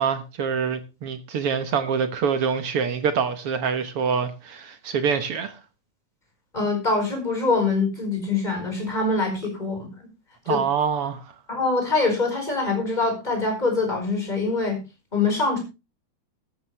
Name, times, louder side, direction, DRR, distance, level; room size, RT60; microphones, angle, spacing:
voice 1, 0.0-5.6 10.5-11.2, right 6 dB, 60° right, 1.7 m, -25 dB
voice 2, 6.5-9.9 10.5-10.6 11.5-14.8 15.1-15.6, left 3 dB, 10° left, 5.0 m, -24 dB
13.5 x 12.5 x 3.3 m
omnidirectional pair, 3.7 m